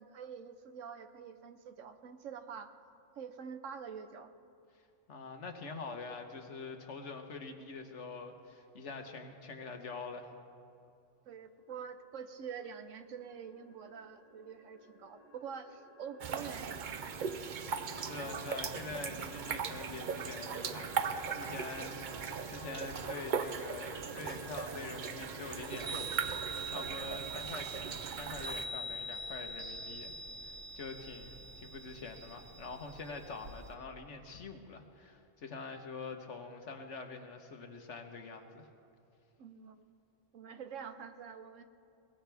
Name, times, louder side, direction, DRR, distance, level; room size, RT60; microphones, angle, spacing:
voice 1, 0.0-2.7 3.2-4.3 11.2-17.2 21.8-22.3 39.4-39.8 40.3-41.6, right 7 dB, 85° right, 9 dB, 1.2 m, -46 dB
voice 2, 5.1-10.3 17.9-22.0 22.5-26.3 26.7-30.1 30.4-38.7, left 4 dB, 70° left, 5 dB, 1.5 m, -45 dB
sound 1, 11.4-27.0, left 1 dB, 25° right, 4.4 m, -53 dB
sound 2, 16.2-28.7, right 6 dB, 50° right, 0.7 m, -39 dB
Chime, 25.6-33.7, right 3 dB, 65° right, 1.5 m, -44 dB
22.0 x 18.0 x 3.5 m, 2.6 s
omnidirectional pair, 1.3 m